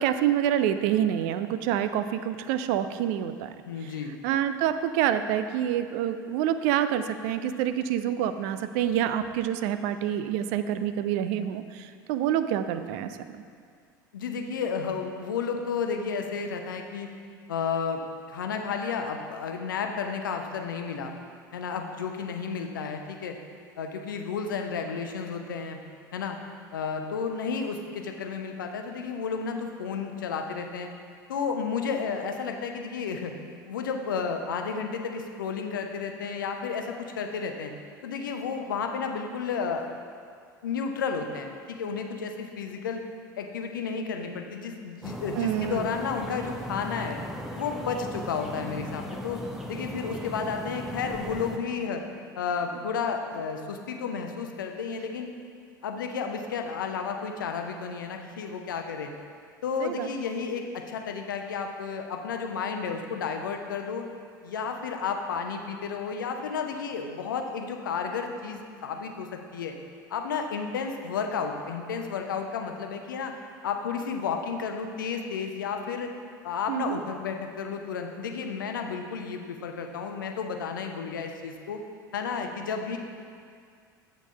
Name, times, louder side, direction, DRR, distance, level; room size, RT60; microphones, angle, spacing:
voice 1, 0.0-3.5 3.8-3.9 4.2-13.4 45.4-45.9 59.8-60.1 76.7-77.0, right 10 dB, 50° right, 11 dB, 0.4 m, -27 dB
voice 2, 3.7-4.2 14.1-17.1 17.5-18.0 18.3-21.1 21.5-23.4 23.8-25.8 26.1-26.4 26.7-30.9 31.3-33.3 33.6-37.7 38.0-39.9 40.6-43.0 43.4-47.2 47.5-49.4 49.7-52.0 52.4-55.3 55.8-59.1 59.6-64.0 64.4-69.7 70.1-73.3 73.6-76.1 76.4-81.8 82.1-83.0, left 5 dB, 70° left, 4 dB, 0.7 m, -32 dB
sound 1, 45.0-51.6, equal, 5° right, 0.7 m, -37 dB
8.2 x 4.1 x 5.3 m, 2.2 s
figure-of-eight pair, 75°, 11 cm